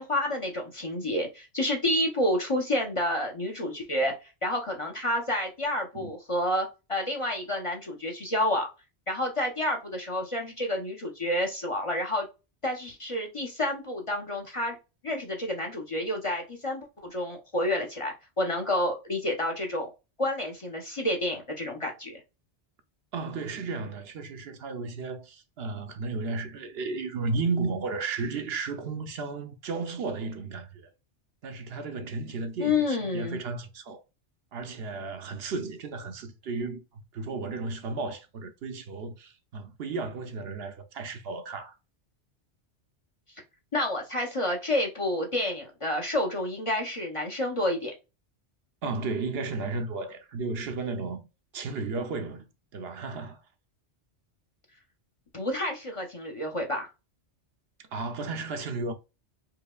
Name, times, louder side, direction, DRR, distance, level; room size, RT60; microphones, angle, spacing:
voice 1, 0.0-4.1 4.4-8.7 9.1-12.3 12.6-14.8 15.0-19.9 20.2-22.2 32.6-33.4 43.7-47.9 55.3-56.9, left 1 dB, 35° left, 0.7 m, -29 dB
voice 2, 23.1-30.9 31.4-34.0 34.5-41.8 48.8-51.3 51.5-53.4 57.9-58.9, right 3 dB, 65° right, 0.8 m, -34 dB
4.7 x 2.8 x 2.2 m
omnidirectional pair, 1.2 m